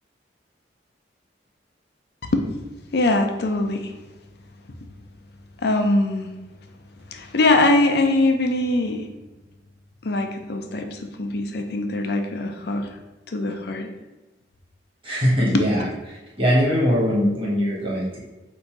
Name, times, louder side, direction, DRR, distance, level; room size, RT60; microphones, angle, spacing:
voice 1, 2.9-3.9 5.6-6.3 7.1-9.1 10.0-12.9 13.3-13.9 15.5-15.7, left 2 dB, 60° left, 4 dB, 0.6 m, -22 dB
voice 2, 15.0-15.8 16.4-18.2, equal, 30° right, -6 dB, 1.4 m, -21 dB
3.9 x 2.7 x 4.6 m, 1.1 s
head